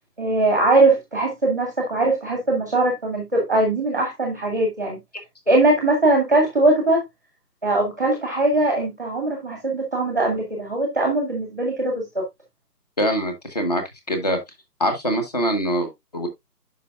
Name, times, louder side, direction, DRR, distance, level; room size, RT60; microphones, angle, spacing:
voice 1, 0.2-5.0 5.5-7.0 7.6-12.2, right 2 dB, 10° right, 1.1 m, -21 dB
voice 2, 13.0-14.4 14.8-16.3, equal, 25° left, 1.2 m, -24 dB
10.5 x 5.5 x 2.3 m
figure-of-eight pair, 160°, 49 cm